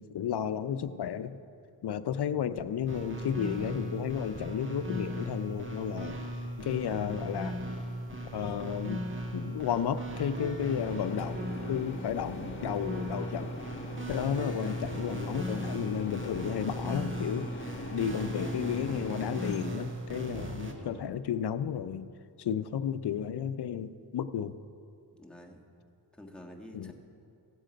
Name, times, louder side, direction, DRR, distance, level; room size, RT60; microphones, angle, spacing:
voice 1, 0.0-1.4 1.8-6.2 6.6-7.6 8.3-13.6 14.1-22.1 22.4-24.6 26.7-26.9, left 8 dB, 60° left, 13 dB, 0.6 m, -33 dB
sound 1, 2.9-20.7, right 1 dB, 25° right, 1.4 m, -37 dB
sound 2, 10.6-19.6, left 2 dB, 25° left, 1.3 m, -42 dB
voice 2, 20.7-21.0 25.2-25.6 26.1-26.9, left 1 dB, ahead, 0 dB, 1.6 m, -49 dB
15.5 x 7.5 x 5.1 m, 2.6 s
cardioid pair, 65°, 44 cm